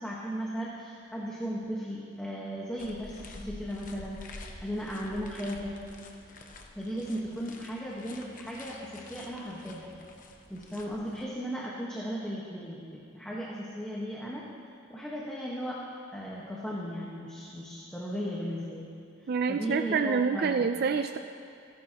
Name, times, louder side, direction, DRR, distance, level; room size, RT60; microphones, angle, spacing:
voice 1, 0.0-5.8 6.7-9.9 10.5-14.5 14.9-15.8 16.1-18.9 19.2-20.7, equal, 5° left, -6 dB, 1.3 m, -36 dB
sound 1, 2.8-11.2, left 2 dB, 40° left, 0.9 m, -48 dB
voice 2, 19.3-21.2, right 5 dB, 45° right, 7 dB, 0.4 m, -27 dB
28.0 x 11.0 x 2.9 m, 2.5 s
head